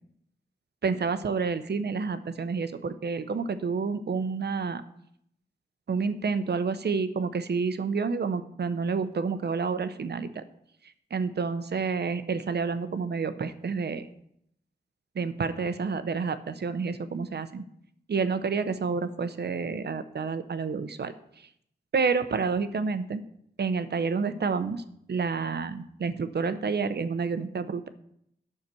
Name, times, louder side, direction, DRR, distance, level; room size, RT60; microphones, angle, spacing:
voice 1, 0.8-4.8 5.9-10.4 11.1-14.1 15.2-17.6 18.1-21.1 21.9-23.2 23.6-24.8 25.1-27.9, right 5 dB, 65° right, 11 dB, 0.8 m, -29 dB
9.7 x 5.9 x 6.9 m, 0.73 s
cardioid pair, 50°, 19 cm